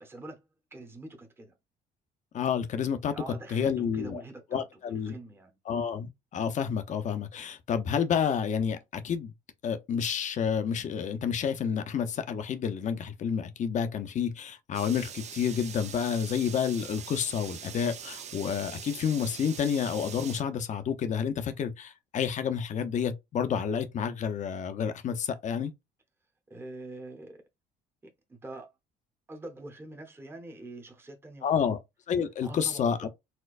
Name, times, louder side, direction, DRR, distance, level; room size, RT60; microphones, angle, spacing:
voice 1, 0.0-1.5 3.1-5.6 26.5-27.4 28.0-28.7 29.3-31.7 32.4-33.1, right 2 dB, 15° right, 0.9 m, -45 dB
voice 2, 2.3-3.1 3.5-4.2 4.5-5.1 5.7-9.3 9.6-25.7 31.4-31.8 32.1-33.1, left 7 dB, 45° left, 0.7 m, -29 dB
sound 1, 14.7-20.4, right 8 dB, 40° right, 0.5 m, -43 dB
4.3 x 2.2 x 2.4 m
cardioid pair, 110°, 17 cm